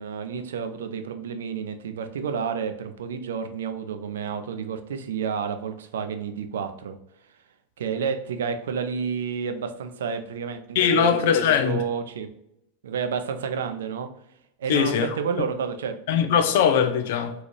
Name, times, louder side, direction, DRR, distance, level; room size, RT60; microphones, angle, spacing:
voice 1, 0.0-7.0 7.8-12.3 12.8-14.1 14.6-16.0, right 6 dB, 70° right, 0.4 m, -30 dB
voice 2, 10.7-11.8 14.7-15.1 16.1-17.3, left 7 dB, 60° left, 0.5 m, -21 dB
4.0 x 2.8 x 3.2 m
figure-of-eight pair, 85°, 0 cm